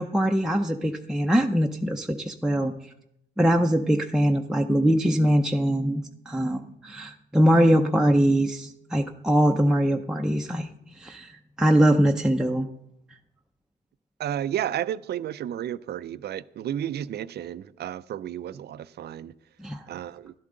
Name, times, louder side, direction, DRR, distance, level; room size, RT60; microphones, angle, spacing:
voice 1, 0.0-2.7 3.4-12.7 19.6-19.8, equal, 5° right, 0.6 m, -22 dB
voice 2, 14.2-19.3 19.9-20.3, right 10 dB, 55° right, 0.5 m, -32 dB
12.0 x 12.0 x 3.8 m
cardioid pair, 90°, 20 cm